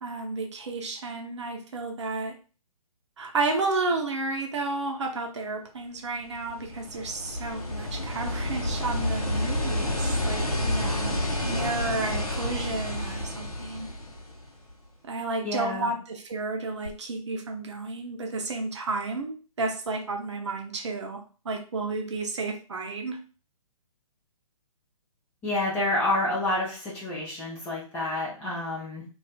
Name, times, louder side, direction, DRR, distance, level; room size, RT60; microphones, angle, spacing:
voice 1, 0.0-2.3 3.2-13.9 15.0-23.2, right 3 dB, 50° right, 2 dB, 0.6 m, -32 dB
sound 1, 6.2-14.7 16.9-17.0, left 1 dB, 80° left, 0.7 m, -30 dB
voice 2, 15.4-15.9 25.4-29.0, left 2 dB, 10° left, -7 dB, 0.4 m, -28 dB
2.4 x 2.3 x 2.2 m, 0.37 s
figure-of-eight pair, 130°, 19 cm